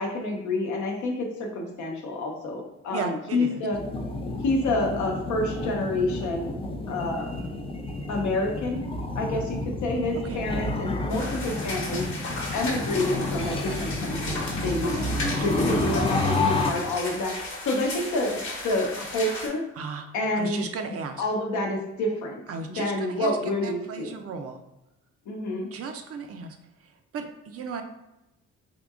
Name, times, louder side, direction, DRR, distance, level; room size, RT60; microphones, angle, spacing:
voice 1, 0.0-3.8 4.4-6.6 6.9-7.3 8.1-8.8 9.1-12.0 12.5-15.1 15.4-17.3 17.6-19.6 20.1-20.6 21.2-24.1 25.3-25.7, left 2 dB, 70° left, 1 dB, 0.7 m, -28 dB
voice 2, 2.9-3.6 10.2-10.4 15.4-15.8 19.7-20.1 20.3-21.2 22.5-24.6 25.7-26.6 26.8-27.8, right 5 dB, 50° right, 5 dB, 0.4 m, -35 dB
sound 1, 3.7-16.7, left 2 dB, 20° left, 0.3 m, -30 dB
sound 2, 11.1-19.5, left 2 dB, 45° left, 1.0 m, -35 dB
3.7 x 2.7 x 2.4 m, 0.95 s
cardioid pair, 90°, 30 cm